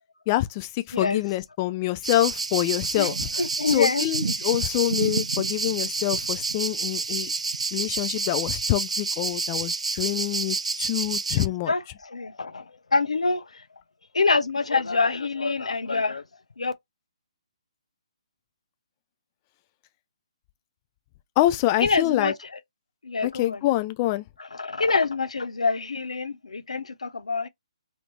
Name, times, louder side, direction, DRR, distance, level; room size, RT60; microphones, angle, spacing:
voice 1, 0.3-3.2 3.7-7.3 7.7-11.7 21.4-22.3 23.2-24.3, left 16 dB, 25° left, 0.3 m, -26 dB
sound 1, 2.0-11.5, right 4 dB, 80° right, 0.4 m, -29 dB
voice 2, 3.4-4.0 11.4-13.6 14.1-16.2 16.6-16.7 21.8-22.3 23.0-23.6 24.5-27.5, left 4 dB, 80° left, 0.6 m, -26 dB
2.8 x 2.7 x 3.1 m
figure-of-eight pair, 140°, 3 cm